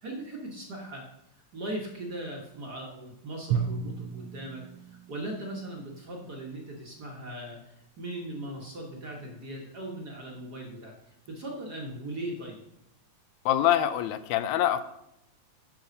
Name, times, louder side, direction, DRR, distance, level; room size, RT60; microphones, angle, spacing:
voice 1, 0.0-1.0 1.5-10.9 11.3-12.6, right 1 dB, 45° right, -1 dB, 1.5 m, -39 dB
Drum, 3.5-5.9, right 7 dB, 90° right, 1.2 m, -33 dB
voice 2, 13.5-14.8, left 12 dB, 80° left, 12 dB, 1.9 m, -25 dB
8.8 x 7.0 x 5.3 m, 0.82 s
omnidirectional pair, 3.3 m